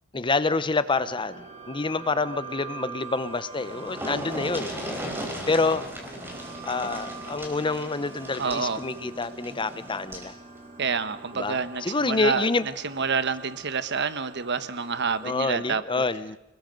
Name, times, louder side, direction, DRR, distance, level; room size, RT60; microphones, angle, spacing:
voice 1, 0.1-4.7 5.5-5.8 6.6-10.3 11.3-12.7 15.2-16.4, left 3 dB, 25° left, 14 dB, 0.7 m, -27 dB
sound 1, 0.9-15.7, right 4 dB, 40° right, 3.4 m, -44 dB
sound 2, 3.2-3.3 3.5-10.3 11.6-11.8 12.2-12.3, equal, 10° right, 4.6 m, -37 dB
voice 2, 8.4-8.8 10.8-12.5 12.8-16.0, right 5 dB, 55° right, 13 dB, 1.2 m, -28 dB
30.0 x 20.0 x 5.3 m, 0.94 s
head